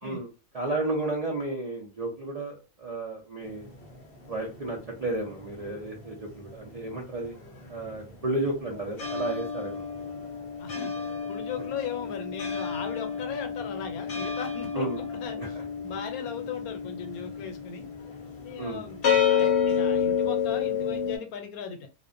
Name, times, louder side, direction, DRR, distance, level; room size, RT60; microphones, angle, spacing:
voice 1, 0.5-3.7 4.3-7.3 7.7-10.1 14.7-15.0 15.4-15.5 18.6-18.8, right 2 dB, 70° right, -2 dB, 0.3 m, -32 dB
sound 1, 3.5-6.1 6.4-21.2, left 7 dB, 55° left, 0.7 m, -30 dB
voice 2, 10.6-10.9 11.3-17.9 18.4-21.9, left 7 dB, 80° left, 5 dB, 1.1 m, -38 dB
2.5 x 2.1 x 2.5 m, 0.31 s
omnidirectional pair, 1.5 m